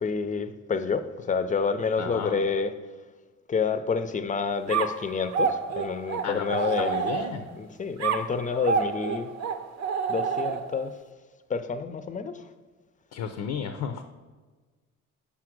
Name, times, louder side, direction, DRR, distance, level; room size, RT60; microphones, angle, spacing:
voice 1, 0.0-2.7 3.5-6.9 7.5-9.3 10.1-10.9 11.5-12.5, left 5 dB, 25° left, 11 dB, 0.5 m, -28 dB
voice 2, 2.0-2.4 6.2-6.5 6.8-7.5 13.1-14.0, left 7 dB, 75° left, 7 dB, 0.6 m, -33 dB
sound 1, 4.7-7.6 8.0-10.9, right 6 dB, 60° right, 0.7 m, -29 dB
5.6 x 4.9 x 6.0 m, 1.3 s
cardioid pair, 90°, 30 cm